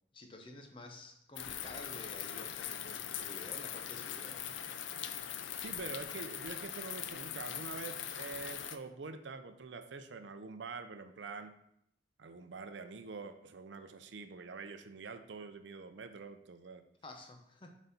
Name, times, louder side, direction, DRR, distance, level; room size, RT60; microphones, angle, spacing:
voice 1, 0.1-4.4 17.0-17.8, left 2 dB, 25° left, 4 dB, 0.8 m, -51 dB
sound 1, 1.4-8.8, left 9 dB, 75° left, 0.5 m, -41 dB
voice 2, 5.6-11.5 12.2-16.8, right 4 dB, 70° right, 8 dB, 0.6 m, -46 dB
7.9 x 4.1 x 4.1 m, 0.74 s
head